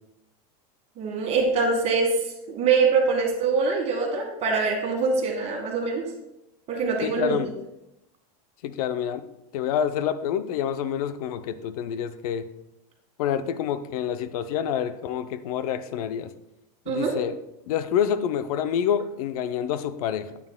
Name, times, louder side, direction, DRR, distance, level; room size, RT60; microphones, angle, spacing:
voice 1, 1.0-2.1 2.5-6.0 6.7-7.4 16.9-17.1, right 4 dB, 35° right, 2 dB, 1.7 m, -24 dB
voice 2, 7.0-7.5 8.6-9.2 9.5-12.5 13.2-16.3 16.9-17.4 17.7-20.4, left 9 dB, 75° left, 11 dB, 0.6 m, -27 dB
9.5 x 8.5 x 2.2 m, 0.87 s
supercardioid pair, 150°, 19 cm